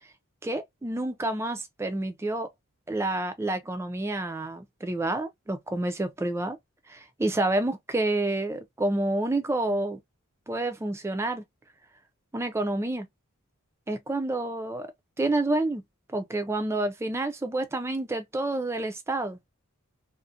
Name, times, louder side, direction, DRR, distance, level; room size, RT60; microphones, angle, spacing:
voice 1, 0.4-2.5 2.9-6.6 6.9-10.0 10.5-11.4 12.3-13.1 13.9-14.9 15.2-15.8 16.1-19.4, right 2 dB, 10° right, 0.3 m, -29 dB
2.5 x 2.1 x 2.4 m
head